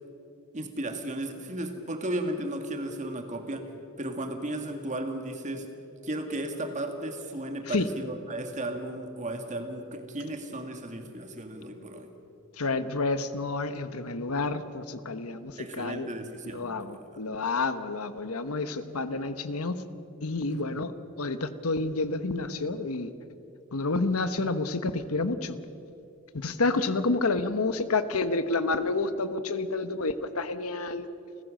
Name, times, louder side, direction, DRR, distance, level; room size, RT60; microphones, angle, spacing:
voice 1, 0.5-3.7 4.0-5.7 6.0-12.1 15.3-17.2 20.5-20.8, right 1 dB, 35° right, 5 dB, 1.9 m, -35 dB
voice 2, 12.6-16.1 16.5-19.8 20.2-20.9 21.2-23.1 23.7-25.6 26.3-31.1, left 3 dB, 80° left, 11 dB, 1.1 m, -29 dB
29.5 x 15.5 x 6.5 m, 2.9 s
head